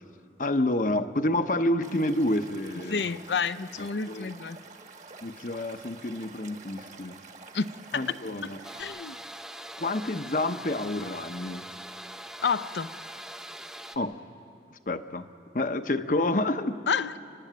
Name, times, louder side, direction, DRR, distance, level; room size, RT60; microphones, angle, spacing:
voice 1, 0.4-3.1 3.8-4.3 5.2-7.2 7.9-8.6 9.8-11.7 14.0-14.1 14.9-15.3 15.5-16.8, left 1 dB, 45° left, 9 dB, 0.8 m, -28 dB
Stream / Liquid, 1.8-8.8, right 4 dB, 45° right, 1.2 m, -48 dB
voice 2, 2.9-4.6 7.5-7.7 7.9-8.0 8.8-9.2 12.4-12.9 16.9-17.1, left 5 dB, 80° left, 13 dB, 0.6 m, -29 dB
sound 1, 8.6-14.0, right 1 dB, 5° right, 0.8 m, -42 dB
29.5 x 12.0 x 9.2 m, 2.5 s
head